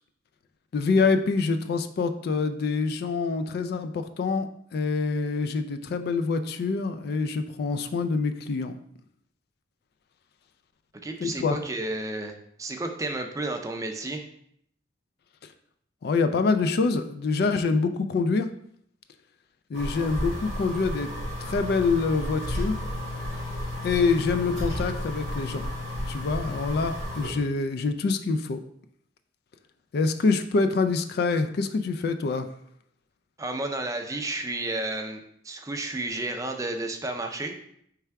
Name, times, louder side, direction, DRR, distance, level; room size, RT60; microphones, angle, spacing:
voice 1, 0.7-8.7 11.2-11.6 16.0-18.5 19.7-21.1 21.4-22.8 23.8-25.7 26.1-28.6 29.9-32.5, left 4 dB, 55° left, 9 dB, 0.3 m, -26 dB
voice 2, 11.0-14.2 33.4-37.5, right 2 dB, 20° right, 5 dB, 0.4 m, -32 dB
sound 1, 19.7-27.3, left 1 dB, 75° left, 1.9 m, -32 dB
3.3 x 3.3 x 4.6 m, 0.70 s
head